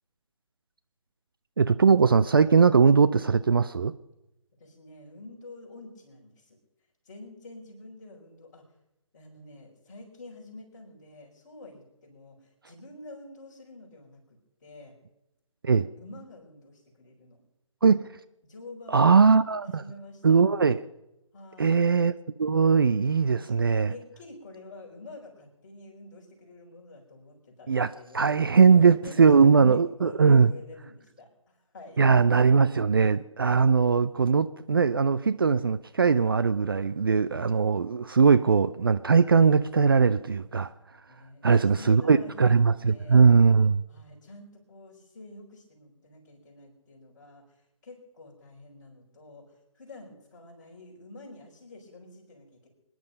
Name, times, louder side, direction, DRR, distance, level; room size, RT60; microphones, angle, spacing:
voice 1, 1.6-4.0 15.6-15.9 17.8-18.1 18.9-19.8 20.2-20.8 21.6-22.1 22.4-23.9 27.7-30.5 32.0-40.7 41.4-43.8, right 5 dB, 40° right, 0.4 m, -20 dB
voice 2, 4.6-6.6 7.0-8.7 9.1-14.9 16.0-17.4 18.4-19.1 19.6-20.4 21.3-21.8 23.2-28.4 28.7-32.0 41.1-43.3 43.9-52.7, left 2 dB, 35° left, 4.8 m, -48 dB
24.5 x 10.5 x 5.3 m
figure-of-eight pair, 150°, 17 cm